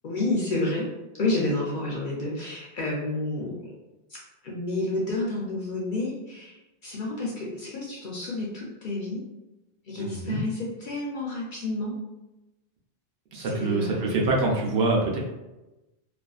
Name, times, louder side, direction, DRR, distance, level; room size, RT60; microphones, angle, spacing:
voice 1, 0.0-0.9 1.1-3.7 4.1-4.2 4.4-6.6 6.8-9.2 9.9-11.9 13.4-14.3, left 2 dB, 60° left, -4 dB, 0.6 m, -30 dB
voice 2, 10.0-10.4 13.3-15.2, right 2 dB, 70° right, -2 dB, 0.8 m, -25 dB
2.5 x 2.4 x 2.3 m, 1.0 s
omnidirectional pair, 1.2 m